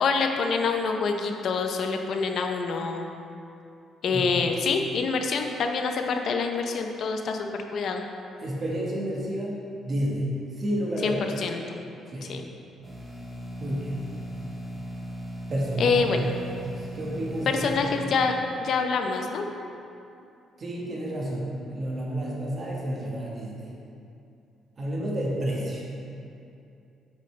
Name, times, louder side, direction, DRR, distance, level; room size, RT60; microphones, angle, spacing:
voice 1, 0.0-3.1 4.0-8.0 11.0-11.8 12.2-12.4 15.8-16.4 17.5-18.3 18.6-19.5, left 5 dB, 60° left, 4 dB, 0.6 m, -26 dB
voice 2, 8.4-10.3 10.6-11.2 12.1-12.3 13.6-14.0 15.5-16.1 16.4-18.1 20.6-23.7 24.8-25.9, right 1 dB, 40° right, -4 dB, 1.3 m, -30 dB
sound 1, 12.8-18.0, right 1 dB, 10° right, 1.3 m, -37 dB
8.2 x 5.2 x 3.2 m, 2.6 s
cardioid pair, 105°, 0 cm